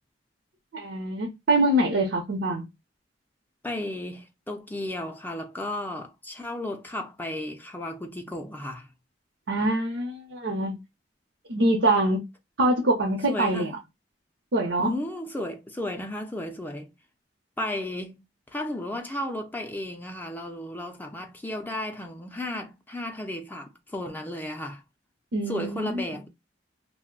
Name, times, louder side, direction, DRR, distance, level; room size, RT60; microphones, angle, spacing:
voice 1, 0.7-2.6 9.5-10.8 11.5-12.2 12.6-13.7 14.5-14.9 25.3-26.0, right 1 dB, 90° right, 0.7 m, -24 dB
voice 2, 3.6-8.9 13.3-13.8 14.8-16.9 17.6-18.2 18.5-24.8 25.5-26.3, left 1 dB, 10° left, 0.4 m, -34 dB
2.5 x 2.1 x 3.7 m
head